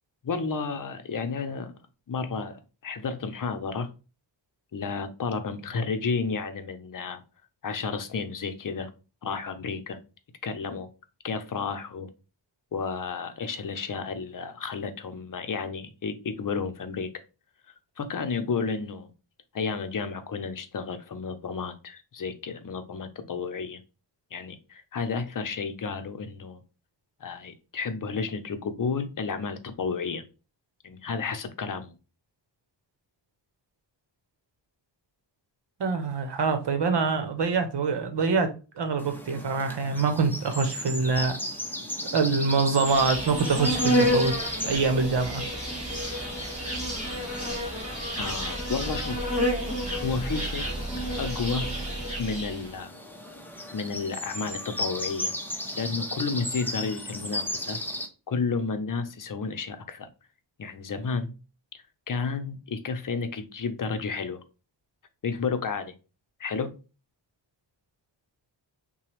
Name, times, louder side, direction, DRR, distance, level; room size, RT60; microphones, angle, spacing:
voice 1, 0.2-1.7 2.1-3.9 4.7-7.2 7.6-8.9 9.2-10.0 10.4-10.9 11.2-12.1 12.7-17.1 18.0-19.1 19.5-23.8 24.3-26.6 27.2-30.2 30.8-31.9 48.2-49.3 50.0-50.7 51.2-51.7 52.2-52.9 53.7-55.3 55.7-57.8 58.3-60.1 60.6-61.3 62.1-64.4 65.2-65.9 66.4-66.7, left 5 dB, 45° left, 0.7 m, -32 dB
voice 2, 35.8-38.5 38.8-41.4 42.1-44.4 44.6-45.4, right 4 dB, 65° right, 1.0 m, -25 dB
sound 1, 39.0-58.1, left 1 dB, 5° left, 0.7 m, -37 dB
Insect, 42.9-52.7, equal, 15° right, 2.2 m, -29 dB
5.8 x 2.3 x 3.3 m
wide cardioid pair, 120°, 45 cm